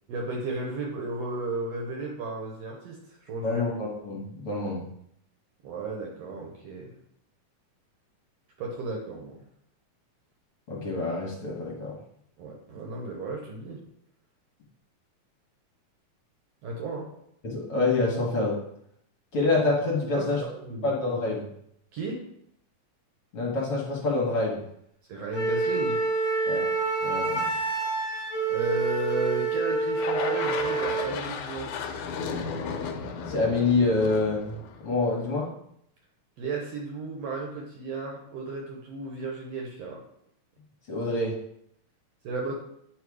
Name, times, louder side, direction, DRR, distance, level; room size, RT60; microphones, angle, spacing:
voice 1, 0.1-3.6 5.6-7.0 8.6-9.4 12.4-13.8 16.6-17.1 20.1-20.9 21.9-22.2 25.1-26.0 28.5-31.7 36.4-40.0 42.2-42.5, right 2 dB, 65° right, -1 dB, 1.8 m, -34 dB
voice 2, 3.4-4.9 10.7-11.9 17.4-18.6 19.3-20.4 20.8-21.5 23.3-24.6 26.5-26.7 27.0-27.6 32.8-32.9 33.3-34.6 34.8-35.5 40.9-41.3, left 3 dB, 50° left, -4 dB, 2.0 m, -26 dB
Wind instrument woodwind instrument, 25.3-31.1, right 4 dB, 25° left, 1.8 m, -27 dB
sound 1, 29.9-35.3, left 6 dB, 75° left, 2.0 m, -34 dB
9.0 x 3.3 x 4.8 m, 0.72 s
omnidirectional pair, 3.6 m